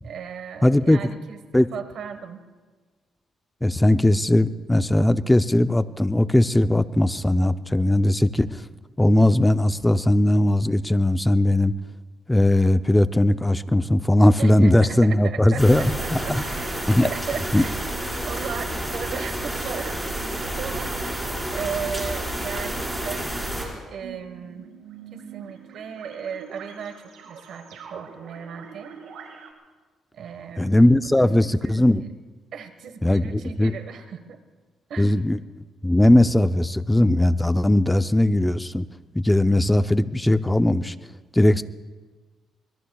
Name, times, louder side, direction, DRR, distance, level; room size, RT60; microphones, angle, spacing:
voice 1, 0.0-2.4 14.4-17.8 18.2-24.7 25.1-29.0 30.1-30.8 31.2-32.1 32.5-34.4 34.9-35.2, right 7 dB, 70° right, 9 dB, 1.5 m, -36 dB
voice 2, 0.6-1.0 1.5-1.7 3.6-8.6 9.0-11.7 12.3-16.4 16.9-17.1 17.5-17.6 30.6-32.0 33.0-33.7 35.0-35.4 35.8-38.9 39.1-40.9 41.3-41.6, left 1 dB, 10° left, 11 dB, 0.6 m, -19 dB
sound 1, 15.6-23.6, right 1 dB, 10° right, 5.0 m, -30 dB
sound 2, 24.0-29.5, right 6 dB, 90° right, 2.8 m, -44 dB
25.5 x 21.5 x 2.4 m, 1.4 s
cardioid pair, 90°, 0 cm